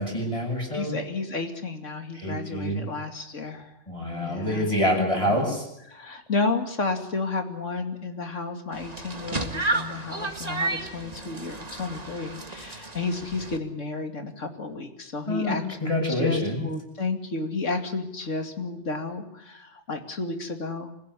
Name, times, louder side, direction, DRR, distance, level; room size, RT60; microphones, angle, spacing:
voice 1, 0.0-0.9 2.1-2.8 3.9-5.7 15.3-16.7, left 1 dB, 25° left, 0 dB, 7.8 m, -26 dB
voice 2, 0.7-3.8 4.2-4.7 5.2-5.6 5.9-20.9, left 3 dB, 85° left, 6 dB, 2.9 m, -32 dB
sound 1, 8.7-13.6, right 2 dB, 35° right, 2.1 m, -32 dB
26.0 x 16.0 x 9.9 m, 0.80 s
omnidirectional pair, 1.2 m